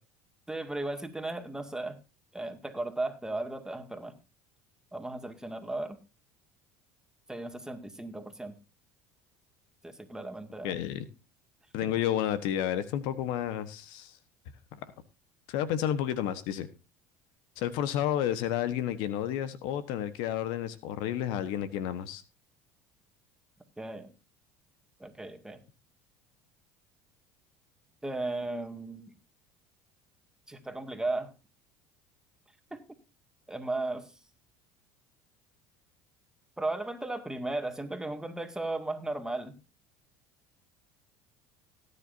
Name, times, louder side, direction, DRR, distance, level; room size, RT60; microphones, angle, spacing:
voice 1, 0.5-2.0 2.3-4.1 4.9-6.0 7.3-8.5 9.8-10.8 11.8-11.9 23.8-24.1 25.0-25.6 28.0-29.1 30.5-31.3 32.7-32.8 33.5-34.1 36.6-39.5, right 2 dB, 5° right, 6 dB, 2.1 m, -35 dB
voice 2, 10.6-11.0 11.7-14.2 14.7-14.8 15.5-16.7 17.6-22.2, left 11 dB, 70° left, 13 dB, 1.2 m, -31 dB
18.0 x 10.0 x 2.7 m, 0.30 s
hypercardioid pair, 80°, 8 cm